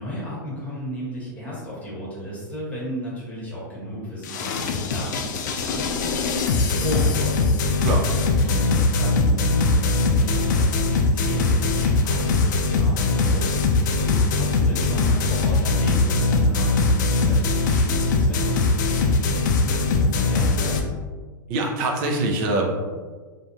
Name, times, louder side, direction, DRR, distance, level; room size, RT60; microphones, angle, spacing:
voice 1, 0.0-7.8 8.4-12.9 13.2-20.9, equal, 10° left, -7 dB, 1.1 m, -34 dB
sound 1, 4.2-20.8, left 3 dB, 60° left, 0.4 m, -21 dB
voice 2, 14.0-14.3 21.5-22.7, right 2 dB, 45° right, 0 dB, 0.6 m, -24 dB
2.4 x 2.1 x 2.9 m, 1.5 s
figure-of-eight pair, 95°, 11 cm